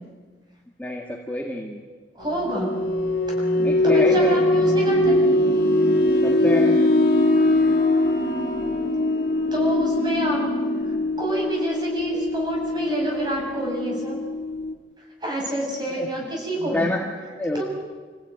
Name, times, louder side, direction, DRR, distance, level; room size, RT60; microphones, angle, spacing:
voice 1, 0.8-1.8 3.6-4.4 6.2-6.8 15.9-16.1 16.6-17.0 17.4-17.6, left 1 dB, 10° left, -2 dB, 2.0 m, -27 dB
sound 1, 2.2-14.7, left 2 dB, 55° left, 1.9 m, -22 dB
voice 2, 2.2-2.7 3.8-5.2 9.5-10.4 11.2-14.2 15.2-16.9 17.5-17.6, right 1 dB, 25° right, -1 dB, 7.6 m, -27 dB
sound 2, 3.5-10.8, right 3 dB, 55° right, 3.9 m, -31 dB
27.0 x 16.0 x 9.5 m, 1.4 s
head